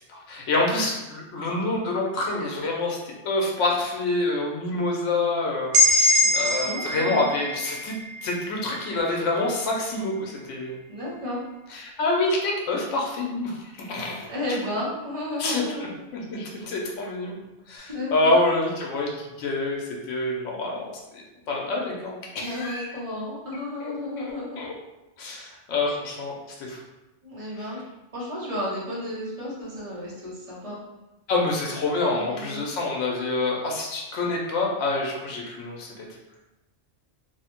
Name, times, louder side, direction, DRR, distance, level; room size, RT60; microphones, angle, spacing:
voice 1, 0.1-10.8 11.7-14.3 15.4-15.6 16.1-17.4 17.7-20.9 21.1-22.9 23.8-23.9 24.2-24.7 25.2-26.3 26.6-26.8 31.3-36.1, left 2 dB, 80° left, -1 dB, 0.9 m, -27 dB
sound 1, 5.7-9.6, left 1 dB, 70° right, 0.9 m, -23 dB
voice 2, 6.2-7.3 10.9-11.4 14.3-15.9 17.9-18.3 22.4-24.6 25.2-25.5 27.2-27.8 28.1-30.8 32.1-32.7, left 1 dB, 35° right, -6 dB, 0.7 m, -33 dB
3.0 x 2.0 x 2.8 m, 1.0 s
omnidirectional pair, 1.3 m